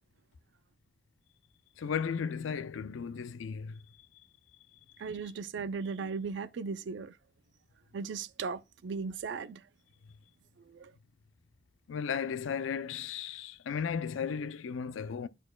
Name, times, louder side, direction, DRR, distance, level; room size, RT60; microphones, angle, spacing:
voice 1, 1.8-3.8 5.2-5.3 11.9-15.3, left 6 dB, 90° left, 0.4 m, -35 dB
voice 2, 5.0-7.1 7.9-9.6 10.7-10.9, right 5 dB, 70° right, 0.4 m, -37 dB
11.5 x 4.2 x 2.2 m
head